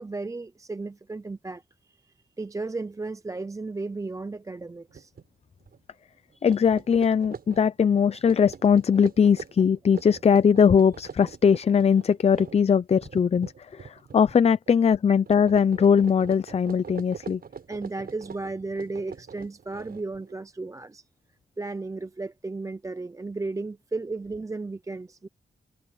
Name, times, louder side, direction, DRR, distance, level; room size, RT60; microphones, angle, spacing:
voice 1, 0.0-1.6 2.0-5.1 17.7-21.0 21.6-25.3, right 3 dB, 20° right, 0.5 m, -34 dB
sound 1, 4.9-5.3 5.6-5.8 6.3-14.4 14.7-15.0 15.3-20.4, right 6 dB, 60° right, 6.3 m, -43 dB
voice 2, 6.4-17.4, left 7 dB, 35° left, 0.5 m, -20 dB
wide cardioid pair, 135°, 18 cm